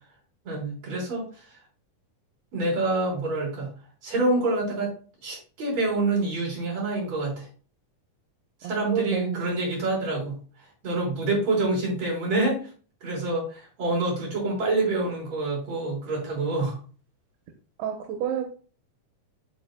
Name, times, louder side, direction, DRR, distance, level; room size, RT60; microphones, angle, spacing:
voice 1, 0.4-1.6 2.5-3.7 4.0-4.9 5.2-7.5 8.6-10.4 10.8-12.7 13.0-16.8, right 2 dB, 45° right, -3 dB, 5.0 m, -27 dB
voice 2, 8.6-9.4 17.8-18.4, right 8 dB, 85° right, 4 dB, 2.9 m, -29 dB
12.5 x 4.9 x 2.2 m, 0.39 s
omnidirectional pair, 4.4 m